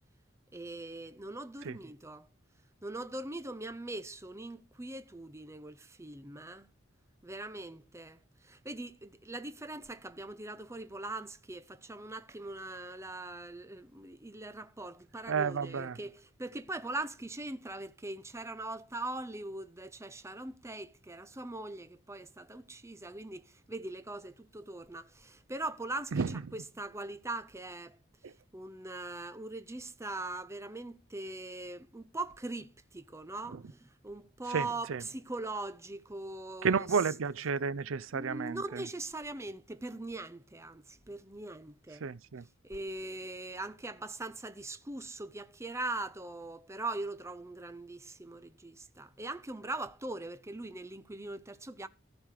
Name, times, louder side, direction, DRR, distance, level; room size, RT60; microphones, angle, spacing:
voice 1, 0.5-2.3 2.8-6.7 7.2-28.0 28.5-37.0 38.1-42.1 42.6-51.9, right 2 dB, 15° right, 0.7 m, -41 dB
voice 2, 15.3-16.0 26.1-26.3 28.2-28.3 33.5-33.6 34.5-35.0 36.6-38.8 42.0-42.4, right 5 dB, 75° right, 0.5 m, -32 dB
14.5 x 5.1 x 6.5 m
head